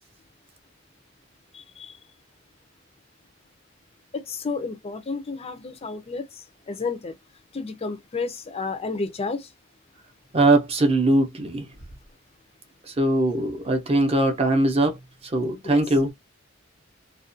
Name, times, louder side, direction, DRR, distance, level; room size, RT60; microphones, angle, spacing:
voice 1, 1.5-2.0 4.1-7.2 7.5-9.5 15.6-16.0, left 4 dB, 30° left, 0.4 m, -32 dB
voice 2, 10.3-11.6 13.0-14.9 15.3-16.1, right 2 dB, 30° right, 0.5 m, -21 dB
2.4 x 2.1 x 2.5 m
head